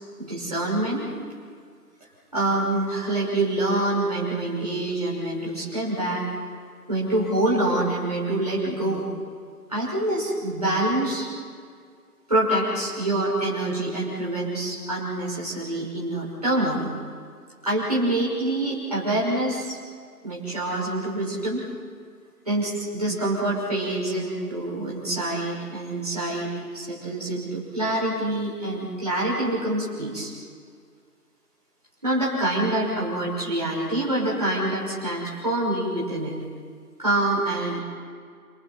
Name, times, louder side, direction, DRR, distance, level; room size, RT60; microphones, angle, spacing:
voice 1, 0.2-1.0 2.3-6.2 6.9-9.0 9.7-11.3 12.3-16.9 17.6-19.8 20.2-21.7 22.5-30.3 32.0-36.4 37.0-37.8, right 1 dB, 25° right, -6 dB, 5.8 m, -26 dB
29.5 x 29.0 x 4.3 m, 2.1 s
figure-of-eight pair, 175°, 48 cm